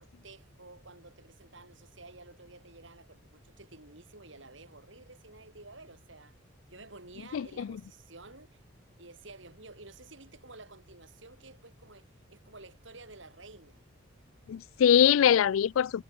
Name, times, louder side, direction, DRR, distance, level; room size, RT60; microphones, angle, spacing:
voice 1, 0.0-6.4 6.7-8.6 9.0-13.8, right 3 dB, 65° right, 7.7 m, -52 dB
voice 2, 7.3-7.8 14.5-16.0, left 9 dB, 80° left, 0.3 m, -23 dB
head